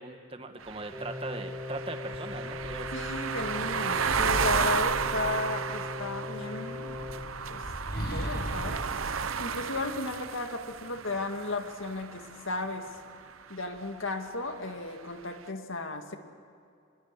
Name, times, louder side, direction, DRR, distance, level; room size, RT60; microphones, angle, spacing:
voice 1, 0.0-3.2, right 2 dB, 25° right, 7 dB, 1.5 m, -40 dB
sound 1, 0.6-12.7, right 6 dB, 85° right, 0.8 m, -33 dB
sound 2, 0.9-7.2, left 3 dB, 5° right, 5.5 m, -39 dB
sound 3, 2.1-5.7 6.7-10.3, equal, 50° left, 5.8 m, -39 dB
voice 2, 2.9-7.1 7.5-7.6 8.1-8.8 9.4-12.9 13.5-16.2, left 2 dB, 75° left, 5 dB, 2.1 m, -35 dB
26.5 x 21.5 x 8.4 m, 2.5 s
head